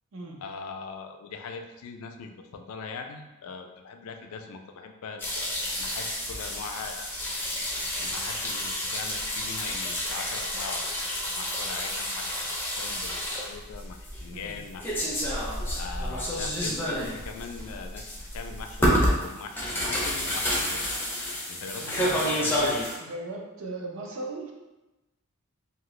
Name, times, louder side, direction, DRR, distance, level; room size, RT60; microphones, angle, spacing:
voice 1, 0.4-7.1 8.0-13.2 13.5-15.0 15.8-21.0 21.5-22.9, left 5 dB, 75° left, 5 dB, 0.3 m, -41 dB
sound 1, 5.2-23.0, equal, 10° left, 0.4 m, -30 dB
voice 2, 21.8-22.1 23.0-24.5, right 2 dB, 60° right, -1 dB, 0.6 m, -38 dB
2.8 x 2.4 x 3.0 m, 1.0 s
head